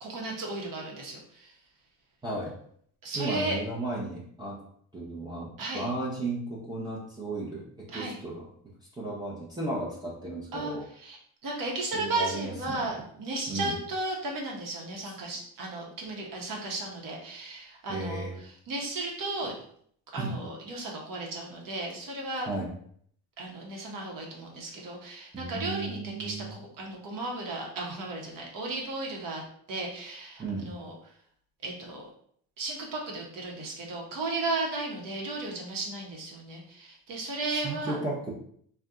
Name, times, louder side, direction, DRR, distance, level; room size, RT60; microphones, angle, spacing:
voice 1, 0.0-1.5 3.0-3.6 5.6-5.9 7.9-8.2 10.5-11.2 11.4-18.3 18.7-19.5 20.1-22.5 23.4-29.4 29.7-30.9 31.6-32.1 32.6-38.0, right 2 dB, 60° right, -1 dB, 1.1 m, -34 dB
voice 2, 2.2-2.5 3.1-4.6 4.9-8.5 8.9-10.8 11.9-12.9 13.5-13.7 15.0-15.1 17.9-18.4 19.4-19.5 20.2-20.4 22.5-22.7 25.3-26.5 30.4-30.7 37.5-38.3, right 2 dB, 10° right, -7 dB, 0.8 m, -35 dB
2.6 x 2.3 x 3.6 m, 0.63 s
supercardioid pair, 75°, 38 cm